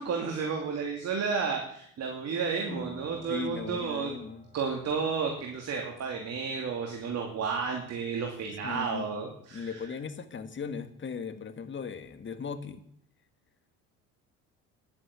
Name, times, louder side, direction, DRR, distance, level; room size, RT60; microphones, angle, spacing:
voice 1, 0.0-4.1 4.5-9.8, right 5 dB, 50° right, 2 dB, 2.6 m, -32 dB
Piano, 2.7-10.1, equal, 20° left, 6.3 m, -51 dB
voice 2, 3.3-4.5 8.6-12.9, left 5 dB, 35° left, 10 dB, 1.7 m, -38 dB
11.0 x 8.8 x 8.3 m, 0.67 s
supercardioid pair, 85°, 33 cm